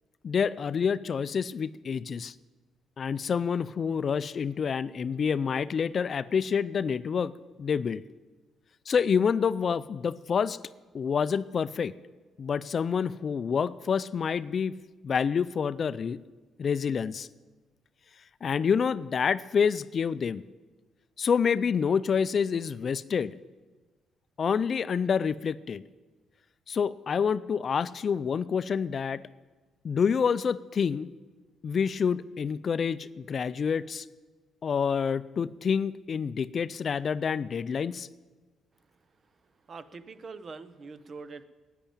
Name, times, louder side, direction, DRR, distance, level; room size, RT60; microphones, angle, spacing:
voice 1, 0.2-2.3 3.0-7.3 7.6-8.0 8.9-10.6 10.9-11.9 12.4-14.7 15.0-16.2 16.6-17.3 18.4-20.4 21.2-23.4 24.4-25.8 26.7-29.2 29.8-31.1 31.6-34.1 34.6-38.1, left 6 dB, 50° left, 16 dB, 0.4 m, -27 dB
voice 2, 39.7-41.4, right 4 dB, 45° right, 13 dB, 0.7 m, -43 dB
10.5 x 9.3 x 8.7 m, 1.3 s
cardioid pair, 90°, 0 cm